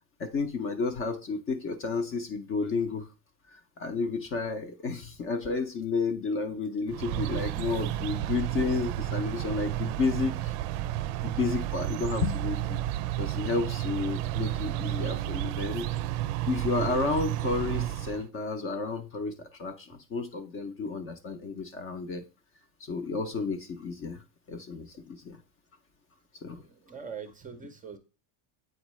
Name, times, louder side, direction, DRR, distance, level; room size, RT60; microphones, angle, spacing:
voice 1, 0.2-3.1 3.5-10.5 11.2-12.8 13.2-15.9 16.5-22.2 22.8-24.2 24.5-25.4 26.4-26.6, left 4 dB, 30° left, 8 dB, 0.5 m, -31 dB
sound 1, 6.9-18.3, right 13 dB, 85° right, 0.5 m, -31 dB
voice 2, 7.7-8.1 8.8-8.9 26.6-28.0, right 6 dB, 20° right, 7 dB, 0.5 m, -44 dB
8.1 x 4.4 x 3.1 m, 0.32 s
cardioid pair, 145°, 46 cm